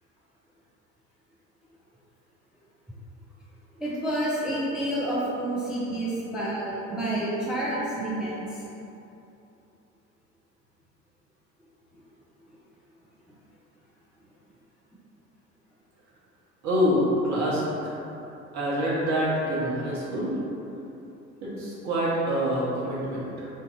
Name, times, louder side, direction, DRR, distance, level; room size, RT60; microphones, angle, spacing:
voice 1, 3.8-8.6, right 1 dB, ahead, -7 dB, 0.5 m, -29 dB
voice 2, 16.6-18.0 18.5-20.4 21.4-23.5, equal, 40° right, -7 dB, 1.3 m, -26 dB
5.6 x 2.6 x 2.6 m, 2.9 s
figure-of-eight pair, 65°, 43 cm